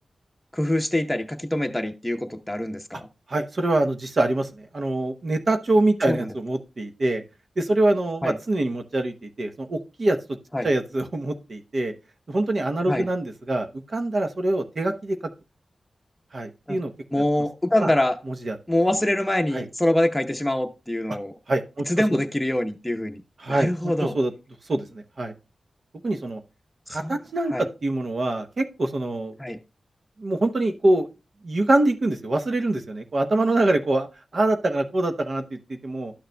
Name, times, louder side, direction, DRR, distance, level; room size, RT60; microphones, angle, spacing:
voice 1, 0.5-3.1 6.1-6.3 8.2-8.4 10.5-10.7 12.9-13.1 16.7-16.8 17.1-18.2 18.7-21.3 21.9-23.2 23.5-24.1 26.9-27.2 27.5-27.6 29.4-29.6, left 1 dB, 10° left, 0.8 m, -24 dB
voice 2, 3.3-7.2 7.6-10.2 10.6-11.9 12.3-15.3 16.3-16.9 17.8-17.9 18.3-18.6 19.5-19.7 21.5-21.8 22.1-22.2 23.4-23.7 24.0-24.3 24.7-25.3 26.0-26.4 26.9-29.3 30.2-31.1 31.4-34.1 34.3-36.1, right 2 dB, 55° right, 0.8 m, -24 dB
11.5 x 6.5 x 2.2 m
cardioid pair, 65°, 0 cm